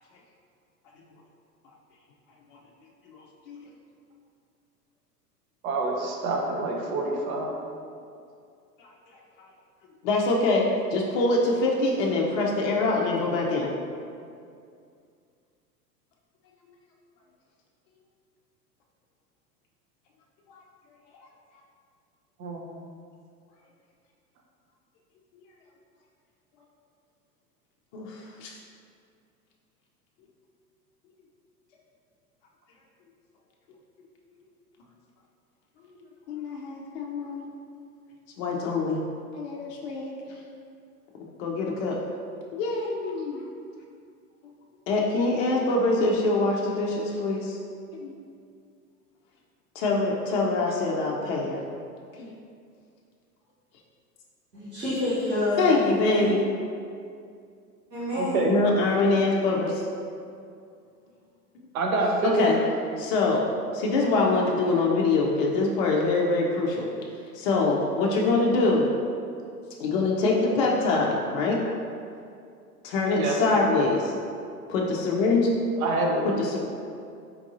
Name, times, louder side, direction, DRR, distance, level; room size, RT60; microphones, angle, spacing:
voice 1, 3.1-3.6 8.8-8.9 10.0-13.7 27.9-28.6 36.3-37.5 38.4-39.0 39.3-40.1 41.4-42.0 42.5-43.4 44.9-47.6 48.0-48.1 49.8-51.6 52.2-52.3 55.6-56.4 58.4-59.9 62.3-62.6 63.0-63.4 63.7-66.9 67.3-68.9 69.8-71.6 72.8-74.1 74.7-75.5 76.2-76.6, left 3 dB, 40° left, -2 dB, 0.5 m, -24 dB
voice 2, 5.6-7.6 22.4-22.7 58.1-58.6 61.7-62.5 73.1-73.4 75.8-76.2, right 2 dB, 60° right, 0 dB, 0.9 m, -26 dB
voice 3, 54.5-55.9 57.9-58.4 61.9-62.0, left 1 dB, 85° right, -12 dB, 1.2 m, -28 dB
4.6 x 3.5 x 2.6 m, 2.4 s
figure-of-eight pair, 85°, 48 cm